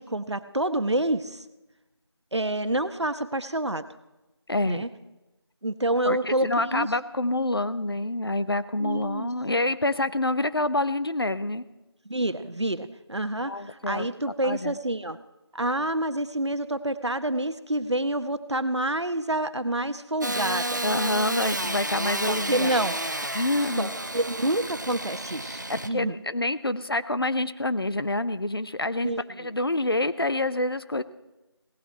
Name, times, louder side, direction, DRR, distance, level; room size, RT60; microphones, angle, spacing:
voice 1, 0.0-1.4 2.3-3.8 4.7-4.9 5.6-6.9 8.8-9.3 12.1-15.2 15.5-20.8 22.3-23.0 23.8-23.9 24.1-25.6 25.9-26.1 29.0-29.2, right 1 dB, 90° right, 11 dB, 1.0 m, -28 dB
voice 2, 4.5-4.8 6.0-11.6 13.4-14.1 14.4-14.8 20.8-22.7 23.3-23.9 25.7-29.1 29.4-31.0, left 2 dB, 60° left, 14 dB, 0.7 m, -27 dB
Engine starting / Sawing, 20.2-25.9, right 1 dB, 45° right, 0.6 m, -31 dB
17.5 x 11.5 x 4.5 m, 1.0 s
figure-of-eight pair, 175°, 14 cm